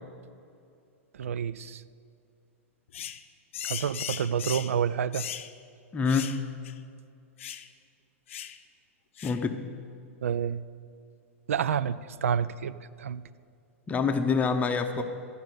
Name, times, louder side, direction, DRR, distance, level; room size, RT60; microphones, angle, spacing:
voice 1, 1.2-1.8 3.6-5.3 10.2-10.6 11.5-13.2, right 8 dB, 75° right, 16 dB, 0.4 m, -29 dB
sound 1, 2.9-3.2 3.5-4.7 5.1-5.5 6.1-6.4 6.6-6.8 7.4-7.7 8.3-8.6 9.2-9.4, left 10 dB, 65° left, 0.6 m, -37 dB
voice 2, 5.9-6.3 9.2-9.6 13.9-15.0, left 5 dB, 20° left, 6 dB, 0.7 m, -26 dB
13.0 x 5.4 x 8.9 m, 2.4 s
hypercardioid pair, 105°, 7 cm